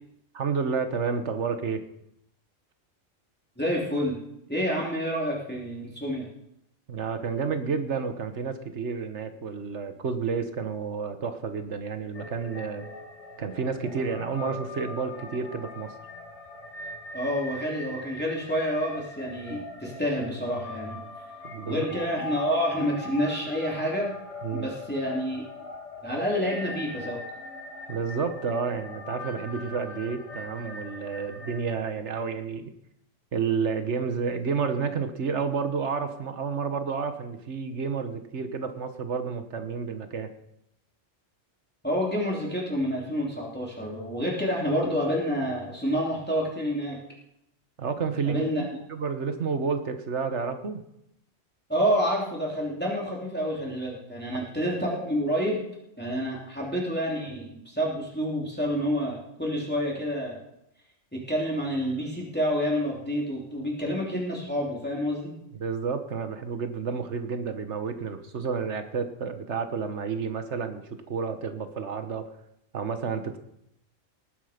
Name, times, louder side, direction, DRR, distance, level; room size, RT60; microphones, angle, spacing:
voice 1, 0.3-1.8 6.9-12.9 13.4-15.9 21.4-21.9 24.4-24.7 27.9-32.7 33.3-40.3 47.8-50.8 65.6-72.3 72.7-73.4, right 5 dB, 65° right, 9 dB, 1.6 m, -30 dB
voice 2, 3.6-4.2 4.5-6.3 17.1-21.0 21.6-24.1 24.5-25.5 26.0-27.2 41.8-47.0 48.2-48.6 51.7-55.6 56.0-60.4 61.1-65.3, equal, 10° left, -3 dB, 3.1 m, -28 dB
sound 1, 12.1-31.6, left 2 dB, 65° left, 2.7 m, -41 dB
19.5 x 10.0 x 5.1 m, 0.80 s
omnidirectional pair, 1.3 m